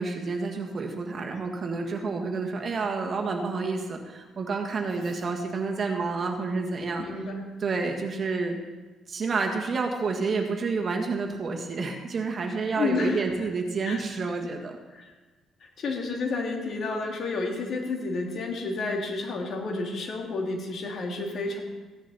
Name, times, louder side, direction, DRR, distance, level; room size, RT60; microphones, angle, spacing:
voice 1, 0.0-7.0 7.6-8.6 9.1-14.8, right 4 dB, 40° right, 3 dB, 1.6 m, -29 dB
voice 2, 7.0-7.4 12.7-13.2 13.8-14.0 14.9-15.1 15.6-21.6, left 3 dB, 55° left, 1 dB, 2.6 m, -30 dB
15.5 x 10.5 x 4.2 m, 1.3 s
cardioid pair, 120°, 0 cm